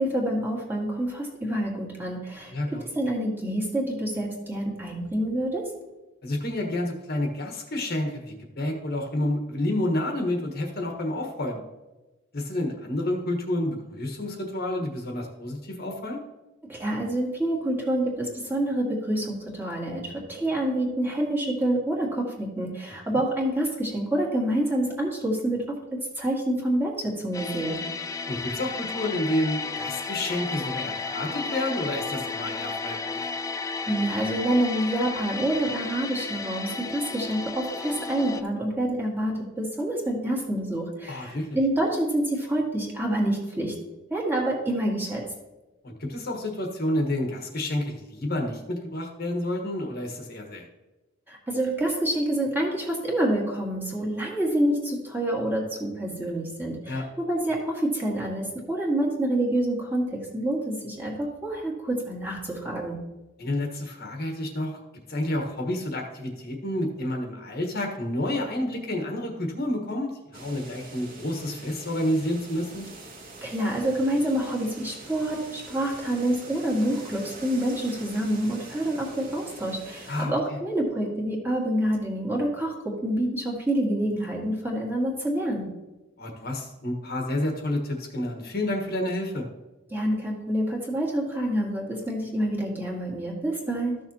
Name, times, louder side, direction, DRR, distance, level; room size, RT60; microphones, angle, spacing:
voice 1, 0.0-5.7 16.7-27.8 33.9-43.8 44.1-45.3 51.3-63.0 73.4-85.7 89.9-94.0, right 1 dB, 10° right, -3 dB, 2.0 m, -27 dB
voice 2, 2.5-2.9 6.2-11.6 12.3-16.2 22.9-23.0 28.3-33.3 41.1-41.6 45.8-50.7 56.9-57.0 63.4-64.8 65.1-72.9 80.1-80.6 86.2-89.5, left 1 dB, 50° left, 2 dB, 1.4 m, -29 dB
sound 1, 27.3-38.4, left 4 dB, 15° left, 0.3 m, -33 dB
sound 2, 70.3-80.2, right 2 dB, 50° right, 1.8 m, -44 dB
14.0 x 6.4 x 2.9 m, 1.1 s
head